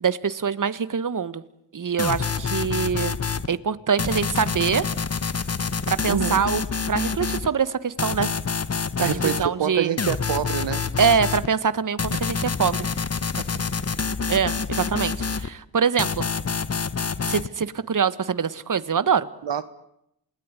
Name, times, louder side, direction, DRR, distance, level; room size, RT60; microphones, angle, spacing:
voice 1, 0.0-1.4 1.7-3.2 3.5-4.8 5.9-6.6 6.9-8.3 9.0-9.9 11.0-12.9 14.3-16.3 17.3-19.3, right 6 dB, 45° right, 1.5 m, -24 dB
sound 1, 2.0-3.5 4.0-7.5 8.0-9.5 10.0-11.5 12.0-15.5 16.0-17.5, left 5 dB, 35° left, 1.2 m, -27 dB
voice 2, 6.1-6.4 9.0-10.9 19.4-19.6, right 9 dB, 70° right, 1.3 m, -26 dB
27.5 x 21.0 x 9.7 m
cardioid pair, 60°, 45 cm